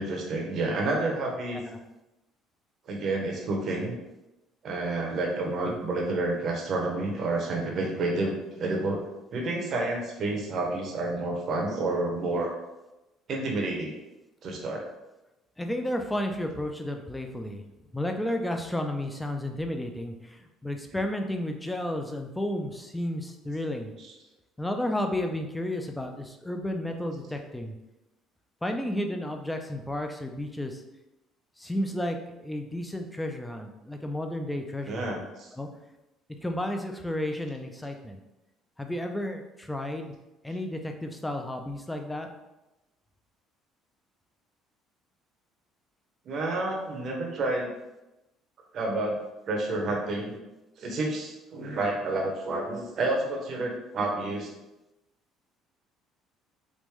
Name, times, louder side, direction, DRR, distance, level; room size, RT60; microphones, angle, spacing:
voice 1, 0.0-1.6 2.9-4.0 4.6-9.0 9.3-12.5 13.3-14.0 14.4-14.8 24.0-24.1 34.9-35.5 46.3-47.7 48.7-49.2 49.5-50.4 50.8-54.5, right 2 dB, 50° right, 0 dB, 0.7 m, -29 dB
voice 2, 15.6-17.6 17.9-23.9 24.6-27.7 28.6-30.8 31.6-35.2 35.6-35.7 36.4-38.2 38.8-40.1 40.4-42.3, left 1 dB, 10° left, 4 dB, 0.4 m, -32 dB
3.5 x 2.5 x 3.1 m, 0.98 s
cardioid pair, 100°, 0 cm